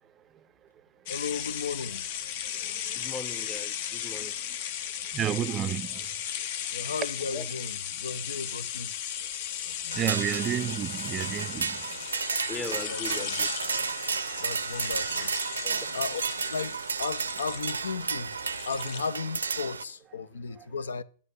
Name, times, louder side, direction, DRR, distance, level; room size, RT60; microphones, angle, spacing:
voice 1, 1.1-2.0 6.7-8.9 12.9-13.4 14.4-15.3 15.9-16.2 16.5-18.3 18.7-21.0, left 5 dB, 80° left, 0.6 m, -35 dB
sound 1, 1.1-19.1, left 10 dB, 55° left, 0.9 m, -36 dB
voice 2, 2.4-3.0 5.1-6.1 9.9-12.0 12.3-12.5 13.7-13.8 14.2-14.4 15.2-15.3 20.6-20.7, right 11 dB, 30° right, 0.4 m, -32 dB
voice 3, 3.0-4.6 7.3-7.5 12.5-13.5 14.3-14.5 15.6-15.9, left 4 dB, 20° left, 0.8 m, -39 dB
sound 2, 9.9-19.8, right 5 dB, 85° right, 0.5 m, -32 dB
11.5 x 6.8 x 5.2 m
figure-of-eight pair, 100°, 0 cm